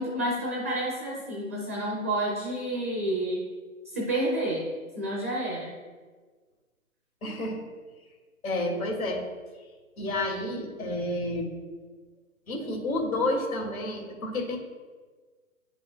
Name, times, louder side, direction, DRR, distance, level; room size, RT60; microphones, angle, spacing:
voice 1, 0.0-3.5 3.9-4.7 4.9-5.7, right 1 dB, 10° right, -4 dB, 0.4 m, -29 dB
voice 2, 7.2-7.6 8.4-9.3 10.0-11.5 12.5-14.6, left 1 dB, 75° left, 1 dB, 1.8 m, -30 dB
9.8 x 5.4 x 2.4 m, 1.4 s
hypercardioid pair, 145°, 42 cm